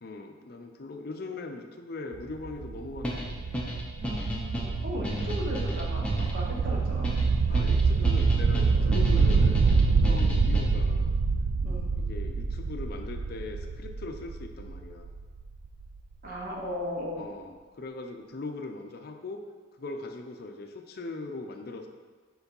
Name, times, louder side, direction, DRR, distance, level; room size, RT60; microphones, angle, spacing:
voice 1, 0.0-3.4 5.0-5.3 7.5-9.6 9.9-11.1 11.9-15.1 17.2-19.4 19.8-21.9, left 3 dB, 50° left, 5 dB, 0.5 m, -40 dB
sound 1, 2.1-15.9, right 4 dB, 70° right, 0.3 m, -26 dB
sound 2, 3.0-11.0, equal, 5° left, 0.7 m, -34 dB
voice 2, 4.0-7.1 11.6-11.9 16.2-17.3, left 1 dB, 45° right, -2 dB, 0.9 m, -36 dB
4.8 x 3.9 x 5.3 m, 1.4 s
head